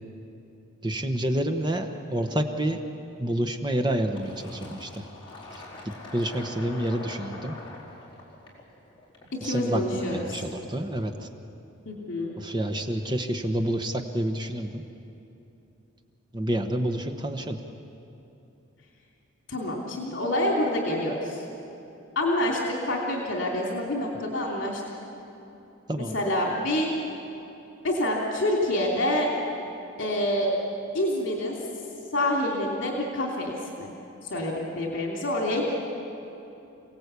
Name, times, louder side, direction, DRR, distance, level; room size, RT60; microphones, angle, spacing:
voice 1, 0.8-2.8 3.2-5.0 6.1-7.5 9.4-11.3 12.4-14.8 16.3-17.6 25.9-26.2, right 1 dB, 20° right, 5 dB, 1.1 m, -28 dB
Fill (with liquid), 4.2-9.6, left 2 dB, 25° left, 4.2 m, -43 dB
voice 2, 9.4-10.4 11.9-12.3 19.5-21.4 22.1-24.8 26.0-26.9 27.8-29.3 30.0-30.5 30.9-31.6 32.1-33.9 34.2-35.6, left 1 dB, 65° left, -1 dB, 3.1 m, -27 dB
28.0 x 18.0 x 8.3 m, 2.9 s
head